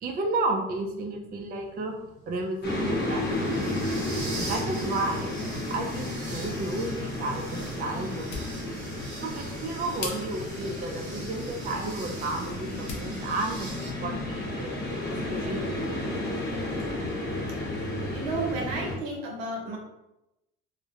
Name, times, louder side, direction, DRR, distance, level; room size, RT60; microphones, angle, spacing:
voice 1, 0.0-1.9 2.3-3.6 4.3-5.3 5.7-8.3 9.2-14.7 15.3-16.0, right 2 dB, 30° right, 2 dB, 0.4 m, -32 dB
sound 1, 0.8-13.9, right 2 dB, 50° right, 0.9 m, -44 dB
sound 2, 2.6-19.0, left 1 dB, 35° left, 0.8 m, -32 dB
sound 3, 8.0-13.1, left 4 dB, 65° left, 0.7 m, -43 dB
voice 2, 18.1-19.8, right 2 dB, 85° right, 1 dB, 0.7 m, -32 dB
2.3 x 2.0 x 2.7 m, 0.93 s
supercardioid pair, 90°, 30 cm